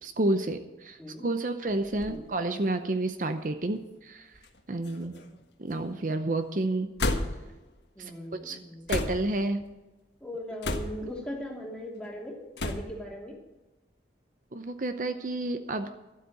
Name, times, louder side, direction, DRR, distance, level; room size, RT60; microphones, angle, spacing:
voice 1, 0.0-4.3 4.7-5.1 5.6-6.9 8.0-8.6 8.9-9.6 14.5-15.9, right 2 dB, 50° right, 8 dB, 0.7 m, -30 dB
sound 1, 1.7-2.2 3.0-3.1 4.3-4.6 4.8-5.4 7.0-7.6 8.9-9.4 10.6-11.2 12.6-13.0, left 2 dB, 80° left, 1.4 m, -32 dB
voice 2, 4.9-5.3 8.0-8.9 10.2-13.3, equal, 5° left, -1 dB, 2.7 m, -39 dB
12.5 x 8.5 x 7.9 m, 1.1 s
head